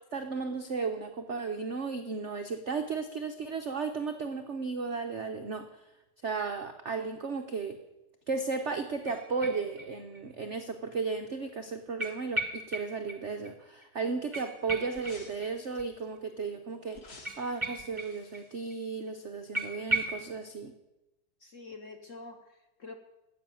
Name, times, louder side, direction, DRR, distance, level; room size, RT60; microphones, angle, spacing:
voice 1, 0.1-5.7 6.2-7.8 8.3-20.7, right 4 dB, 80° right, 6 dB, 0.6 m, -34 dB
sound 1, 9.0-10.2 10.5-10.6 12.0-13.2 13.4-13.5 13.8-13.9 14.3-15.8 17.2-18.4 18.7-18.8 19.1-19.2 19.5-20.3, right 1 dB, 20° right, 0.9 m, -36 dB
sound 2, 14.9-16.0 16.9-19.4 19.7-19.8, left 3 dB, 35° left, 1.3 m, -53 dB
voice 2, 21.4-22.9, left 3 dB, 55° left, 6 dB, 0.9 m, -46 dB
15.0 x 6.2 x 9.0 m, 0.99 s
omnidirectional pair, 2.3 m